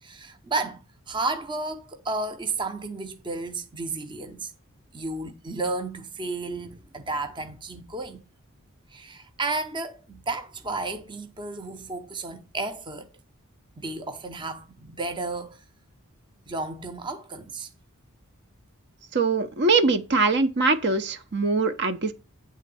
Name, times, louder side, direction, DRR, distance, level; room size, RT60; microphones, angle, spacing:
voice 1, 0.0-0.8 1.1-4.5 4.9-8.2 8.9-13.1 13.8-15.6 16.5-17.7, right 3 dB, 20° right, 0.7 m, -32 dB
voice 2, 19.1-22.1, right 3 dB, 50° right, 0.8 m, -22 dB
9.3 x 3.8 x 6.9 m
head